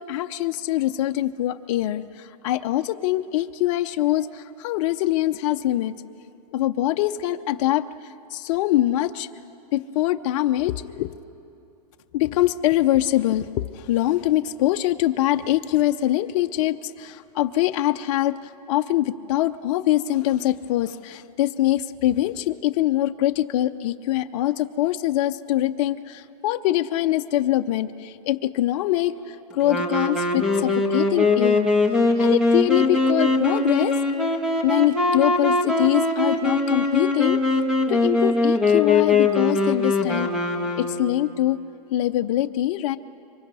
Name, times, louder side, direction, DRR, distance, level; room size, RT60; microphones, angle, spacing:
voice 1, 0.0-6.0 6.5-7.9 8.3-9.3 9.7-11.1 12.1-31.7 32.2-34.0 34.6-37.4 37.9-40.3 40.7-41.6 41.9-43.0, left 14 dB, 50° left, 7 dB, 0.6 m, -23 dB
Wind instrument woodwind instrument, 29.6-41.3, left 3 dB, 5° right, 1.4 m, -21 dB
25.5 x 24.0 x 5.5 m, 2.7 s
supercardioid pair, 150°, 21 cm